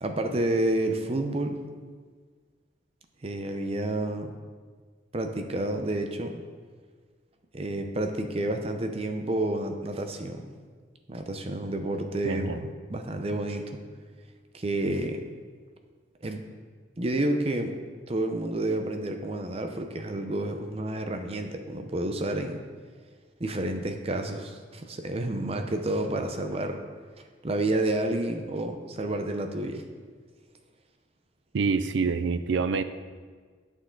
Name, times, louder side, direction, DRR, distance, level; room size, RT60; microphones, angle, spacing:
voice 1, 0.0-1.7 3.2-4.4 5.1-6.4 7.5-10.5 11.1-12.6 12.9-13.8 14.5-15.2 16.2-16.4 17.0-17.7 18.1-22.6 23.4-26.8 27.4-29.8, right 1 dB, 30° right, 5 dB, 0.6 m, -29 dB
voice 2, 12.2-12.7 31.5-32.8, right 4 dB, 75° right, 11 dB, 0.4 m, -26 dB
9.6 x 6.4 x 3.8 m, 1.5 s
head